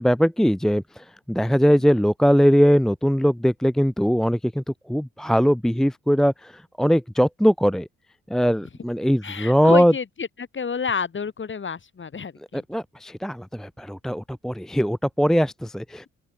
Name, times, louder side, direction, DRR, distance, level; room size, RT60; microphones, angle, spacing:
voice 1, 0.0-4.6 4.9-7.9 8.3-9.9 12.5-16.1, equal, ahead, 0.8 m, -20 dB
voice 2, 1.6-2.0 9.2-12.6, left 6 dB, 40° left, 7.4 m, -30 dB
open air
cardioid pair, 90°, 30 cm